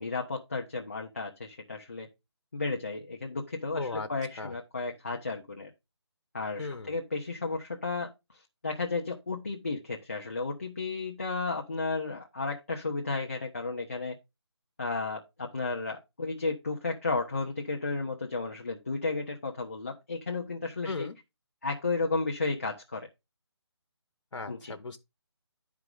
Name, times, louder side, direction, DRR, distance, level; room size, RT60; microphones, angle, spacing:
voice 1, 0.0-2.1 2.5-5.7 6.3-8.1 8.6-14.1 14.8-21.1 21.6-23.1 24.5-24.8, left 3 dB, 30° left, 0.7 m, -33 dB
voice 2, 3.7-4.1 4.4-4.5 6.6-7.0 20.8-21.2 24.3-25.0, left 3 dB, 90° left, 0.9 m, -36 dB
11.0 x 4.8 x 3.8 m
hypercardioid pair, 180°, 15 cm